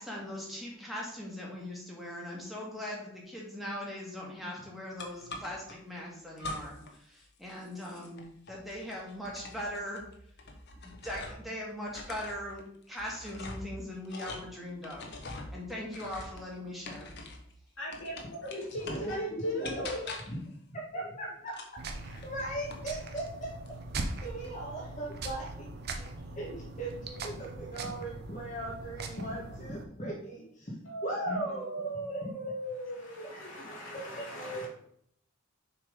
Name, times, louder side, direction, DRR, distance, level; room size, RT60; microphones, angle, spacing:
voice 1, 0.0-8.2 8.5-10.0 10.8-12.6 12.9-15.0 15.5-17.1 31.5-31.7, left 1 dB, ahead, -3 dB, 1.7 m, -40 dB
sound 1, 5.0-5.8 6.4-7.0 7.2-11.5 11.8-17.5 17.9-19.2 19.6-20.5 21.5-22.9 23.2-23.8, left 2 dB, 50° left, 1.0 m, -44 dB
voice 2, 17.8-18.1 18.4-20.0 30.9-34.7, equal, 70° left, -4 dB, 2.7 m, -38 dB
voice 3, 18.9-19.8 20.3-21.5 22.0-23.5 24.0-25.7 25.9-26.1 26.3-30.7 31.0-32.3 33.3-34.7, right 1 dB, 35° left, -5 dB, 1.4 m, -39 dB
sound 2, 21.8-29.8, right 2 dB, 50° right, 0.7 m, -41 dB
6.6 x 3.7 x 5.0 m, 0.69 s
head